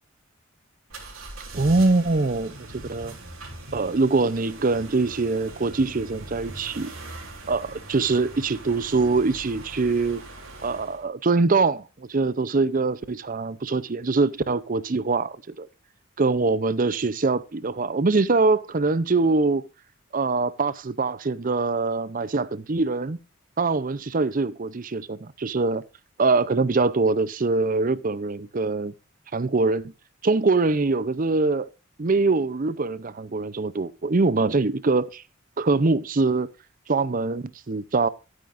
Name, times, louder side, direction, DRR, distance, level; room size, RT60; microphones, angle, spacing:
sound 1, 0.9-11.1, right 2 dB, 80° right, 3.4 m, -41 dB
voice 1, 1.5-3.2 3.7-6.9 7.5-10.2 10.6-15.7 16.2-19.7 20.1-23.2 23.6-25.8 26.2-28.9 29.3-29.9 30.2-31.7 32.0-35.2 35.6-36.5 36.9-38.1, right 3 dB, 40° right, 0.6 m, -23 dB
13.0 x 8.8 x 2.5 m
head